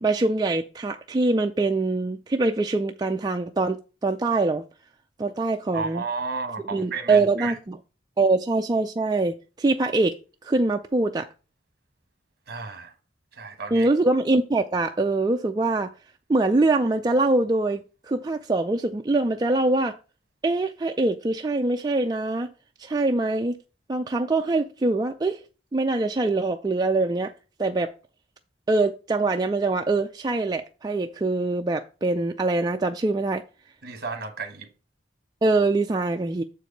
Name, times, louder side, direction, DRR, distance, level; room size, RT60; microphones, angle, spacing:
voice 1, 0.0-3.8 4.0-4.6 5.2-6.0 6.7-7.8 8.2-10.1 10.4-11.3 13.7-15.9 16.3-20.0 20.4-22.5 22.8-23.6 23.9-25.4 25.7-27.3 27.6-27.9 28.7-33.4 35.4-36.4, right 2 dB, 20° right, 0.3 m, -23 dB
voice 2, 5.7-7.6 12.5-12.9 13.3-13.9 33.8-34.7, right 4 dB, 55° right, 1.2 m, -33 dB
7.0 x 4.7 x 5.1 m
head